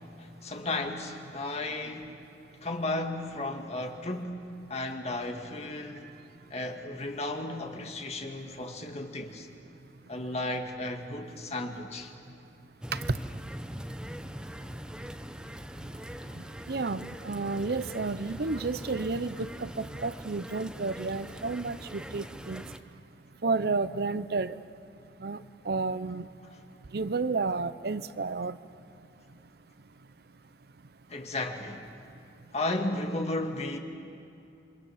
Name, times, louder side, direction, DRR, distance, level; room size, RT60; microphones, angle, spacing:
voice 1, 0.2-2.2 2.6-6.1 6.5-9.5 10.1-12.1 31.1-31.9 32.5-33.8, left 2 dB, 35° left, 2.0 m, -34 dB
sound 1, 12.8-22.8, equal, 5° right, 0.8 m, -42 dB
voice 2, 16.7-22.6 23.4-24.6 25.2-25.4 25.7-26.3 26.9-28.6, right 3 dB, 55° right, 0.6 m, -31 dB
28.5 x 24.5 x 7.3 m
head